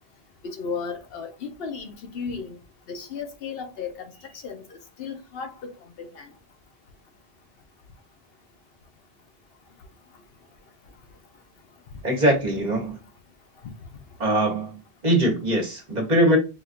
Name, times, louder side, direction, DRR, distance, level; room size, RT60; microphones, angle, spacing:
voice 1, 0.4-2.6 2.9-4.1 4.4-5.7 6.0-6.3, left 5 dB, 70° left, 0.9 m, -34 dB
voice 2, 12.0-13.0 14.2-16.4, right 1 dB, 45° right, 1.1 m, -22 dB
4.9 x 2.5 x 2.5 m
omnidirectional pair, 1.1 m